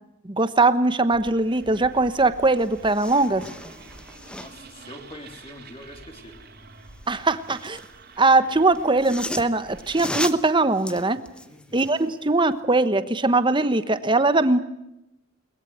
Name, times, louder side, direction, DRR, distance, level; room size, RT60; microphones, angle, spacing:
voice 1, 0.2-3.4 7.1-7.8 8.2-11.2 11.7-14.6, right 2 dB, 20° right, 12 dB, 1.1 m, -21 dB
sound 1, 1.1-10.5, right 3 dB, 50° right, 3.1 m, -47 dB
sound 2, 2.1-2.2 2.5-4.7 6.9-7.9 8.7-12.1 12.5-12.6, left 1 dB, 5° left, 0.9 m, -36 dB
voice 2, 4.4-6.4 11.5-11.8, left 1 dB, 25° left, 4 dB, 3.4 m, -44 dB
22.0 x 20.5 x 9.3 m, 0.88 s
head